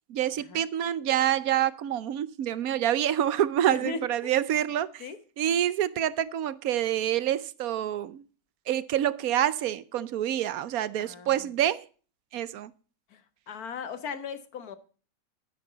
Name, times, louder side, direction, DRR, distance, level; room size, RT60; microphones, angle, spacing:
voice 1, 0.1-5.1 5.4-8.2 8.7-11.9 12.3-12.7, right 11 dB, 75° right, 1.2 m, -27 dB
voice 2, 3.7-4.3 5.0-5.2 11.0-11.5 13.1-13.2 13.5-14.8, left 5 dB, 85° left, 1.7 m, -37 dB
12.0 x 10.5 x 4.0 m
omnidirectional pair, 1.6 m